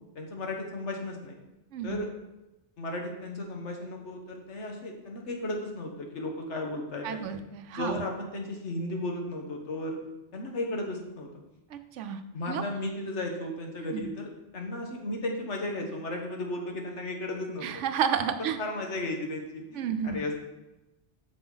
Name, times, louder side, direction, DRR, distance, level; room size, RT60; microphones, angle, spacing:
voice 1, 0.1-1.4 1.8-2.1 2.8-7.4 7.7-10.0 10.3-11.3 12.3-17.7 18.2-20.3, left 1 dB, 75° left, 1 dB, 1.6 m, -35 dB
voice 2, 7.0-8.0 11.7-12.2 12.5-12.6 13.9-14.1 17.6-18.6 19.8-20.2, right 7 dB, 85° right, 9 dB, 1.0 m, -31 dB
7.7 x 6.8 x 4.0 m, 0.97 s
omnidirectional pair, 1.2 m